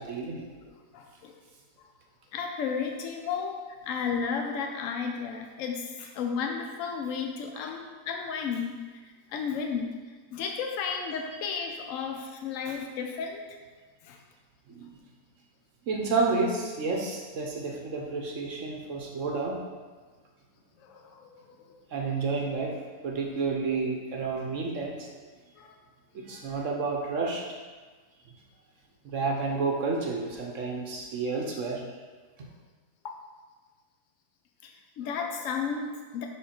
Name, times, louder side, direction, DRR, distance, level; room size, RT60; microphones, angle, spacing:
voice 1, 0.0-0.4 14.7-15.0 15.9-19.6 21.9-22.8 23.0-25.1 26.1-27.5 29.0-31.8 32.4-32.5, right 4 dB, 55° right, 0 dB, 0.9 m, -30 dB
voice 2, 0.6-1.4 1.8-1.9 2.3-8.8 9.3-10.0 10.3-13.6 14.0-14.2 20.8-21.7 25.6-25.7 33.0-33.2 34.6-36.3, left 6 dB, 75° left, 3 dB, 0.7 m, -33 dB
5.4 x 5.1 x 4.3 m, 1.4 s
omnidirectional pair, 1.9 m